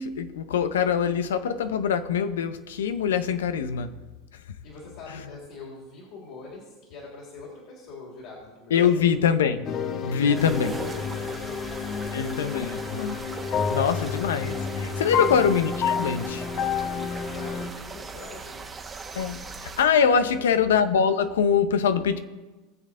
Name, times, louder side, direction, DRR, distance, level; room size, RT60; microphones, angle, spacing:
voice 1, 0.0-3.9 8.7-10.7 12.1-13.1 13.7-16.5 19.2-22.2, left 7 dB, 85° left, 0.7 m, -24 dB
voice 2, 4.6-9.1 10.0-12.9 13.7-14.0 15.1-15.4 17.2-18.7 20.1-20.6, left 3 dB, 65° left, 3.6 m, -44 dB
sound 1, 9.6-17.7, left 6 dB, 45° left, 1.2 m, -30 dB
sound 2, 10.3-19.8, right 4 dB, 20° right, 1.4 m, -40 dB
20.5 x 6.8 x 3.8 m
hypercardioid pair, 95°, 0 cm